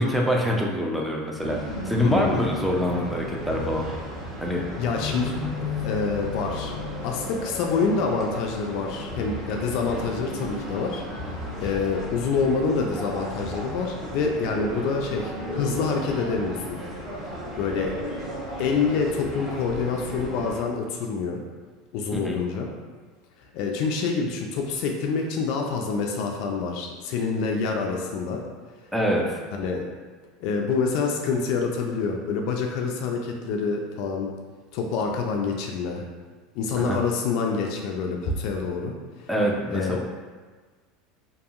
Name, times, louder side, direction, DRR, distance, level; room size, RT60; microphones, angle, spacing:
voice 1, 0.0-1.6 1.8-3.9 4.4-4.6 22.1-22.4 28.9-29.4 36.8-37.0 39.3-40.0, equal, 5° right, -1 dB, 0.4 m, -25 dB
sound 1, 1.4-20.6, equal, 25° right, 0.9 m, -34 dB
voice 2, 2.0-2.4 4.8-5.4 5.8-6.7 7.0-16.8 17.6-18.0 18.6-21.4 21.9-22.7 23.5-28.4 29.5-29.9 30.4-34.3 34.7-36.0 36.5-39.3 39.7-40.0, left 5 dB, 65° left, 1 dB, 0.3 m, -27 dB
2.7 x 2.6 x 2.4 m, 1.4 s
supercardioid pair, 115°, 0 cm